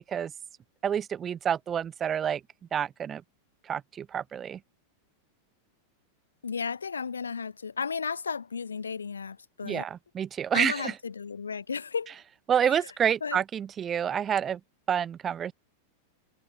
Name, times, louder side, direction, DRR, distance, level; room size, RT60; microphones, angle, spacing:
voice 1, 0.8-2.4 2.7-3.2 3.7-4.6 9.6-10.9 12.5-14.6 14.9-15.5, right 8 dB, 25° right, 0.8 m, -28 dB
voice 2, 6.4-9.9 10.5-12.1 12.6-12.8 13.2-13.4, left 5 dB, 75° left, 0.7 m, -34 dB
figure-of-eight pair, 90°, 0 cm